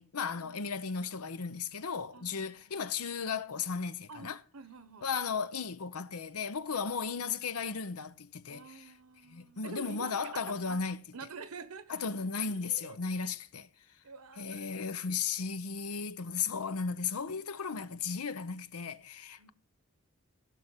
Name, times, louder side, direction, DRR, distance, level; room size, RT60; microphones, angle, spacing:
voice 1, 0.0-4.4 5.0-8.9 9.3-11.0 11.9-13.7 14.4-19.5, left 5 dB, 85° left, 0.7 m, -35 dB
voice 2, 2.1-3.0 4.1-5.1 8.5-10.8 11.1-12.1 12.5-13.0 14.0-14.8 17.2-17.4 17.6-18.1 19.4-19.5, right 4 dB, 90° right, 1.2 m, -48 dB
16.0 x 5.9 x 6.6 m
head